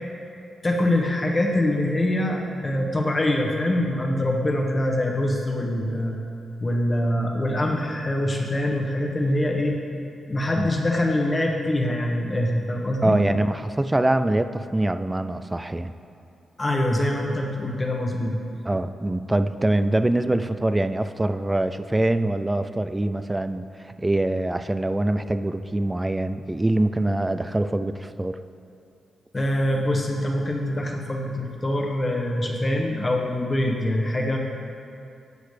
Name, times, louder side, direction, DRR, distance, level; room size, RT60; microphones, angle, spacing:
voice 1, 0.6-6.2 6.6-9.8 10.3-13.2 16.6-18.4 29.3-34.4, left 1 dB, 30° left, 0 dB, 1.3 m, -24 dB
voice 2, 13.0-15.9 18.7-28.4, right 1 dB, 15° right, 10 dB, 0.4 m, -24 dB
12.0 x 7.9 x 3.3 m, 2.6 s
cardioid pair, 70°, 0 cm